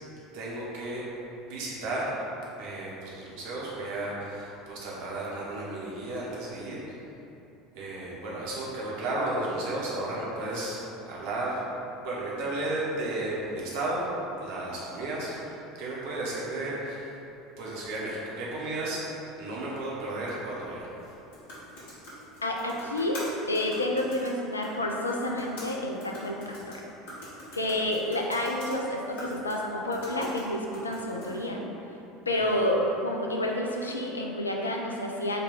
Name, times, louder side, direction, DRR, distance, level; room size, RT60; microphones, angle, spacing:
voice 1, 0.3-1.1 1.4-2.1 2.6-6.8 7.7-11.6 12.0-14.1 14.4-15.4 15.8-17.2 17.6-19.1 19.4-20.9 32.3-32.4, right 2 dB, 55° right, -6 dB, 0.8 m, -33 dB
sound 1, 20.9-31.5, equal, 60° left, 1.1 m, -45 dB
voice 2, 22.4-23.2 23.5-26.8 27.5-31.6 32.3-35.4, left 1 dB, 80° left, 0 dB, 0.3 m, -29 dB
4.3 x 2.3 x 3.4 m, 2.9 s
figure-of-eight pair, 70°, 0 cm